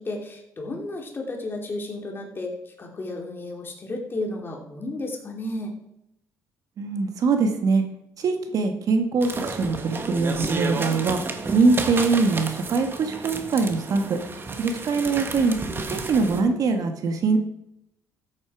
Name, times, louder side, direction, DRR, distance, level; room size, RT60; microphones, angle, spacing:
voice 1, 0.0-5.7, left 2 dB, 30° left, 1 dB, 2.9 m, -33 dB
voice 2, 6.8-7.8 8.2-11.2 11.5-14.2 14.6-15.5 15.9-17.4, right 4 dB, 55° right, 6 dB, 1.7 m, -22 dB
sound 1, 9.2-16.4, right 3 dB, 30° right, 1.7 m, -31 dB
14.0 x 8.6 x 4.8 m, 0.83 s
cardioid pair, 95°, 7 cm